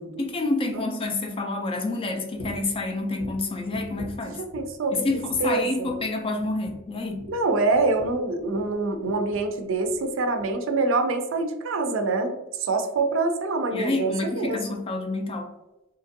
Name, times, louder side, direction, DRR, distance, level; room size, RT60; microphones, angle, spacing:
voice 1, 0.2-4.4 4.9-7.2 13.7-15.5, left 2 dB, 25° left, 5 dB, 0.3 m, -28 dB
sound 1, 2.4-2.7 3.2-4.8 5.0-5.6 5.8-6.1 6.4-8.8 9.0-9.5 9.8-10.0 10.4-10.5, equal, 65° left, 0.8 m, -43 dB
voice 2, 4.4-5.1 5.4-5.9 7.3-14.8, right 3 dB, 65° right, 6 dB, 0.4 m, -25 dB
2.8 x 2.5 x 2.5 m, 0.99 s
head